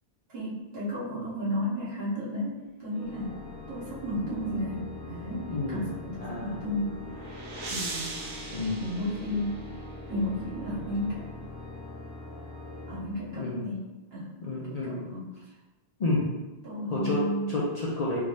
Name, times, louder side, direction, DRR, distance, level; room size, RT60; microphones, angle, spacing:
voice 1, 0.3-3.4 3.7-7.0 7.7-8.1 8.8-9.6 10.1-11.3 12.9-13.8 14.1-15.2 16.6-17.6, left 1 dB, 65° right, -8 dB, 1.4 m, -33 dB
Organ, 2.9-13.8, left 2 dB, 20° left, 0.8 m, -42 dB
voice 2, 5.5-5.9 6.2-6.6 8.5-8.8 13.3-13.7 14.4-15.2 16.0-16.4 16.9-18.2, left 2 dB, 50° left, -4 dB, 0.5 m, -30 dB
sound 1, 6.7-9.9, right 3 dB, 90° right, 1.1 m, -40 dB
3.5 x 2.6 x 3.1 m, 1.1 s
omnidirectional pair, 1.1 m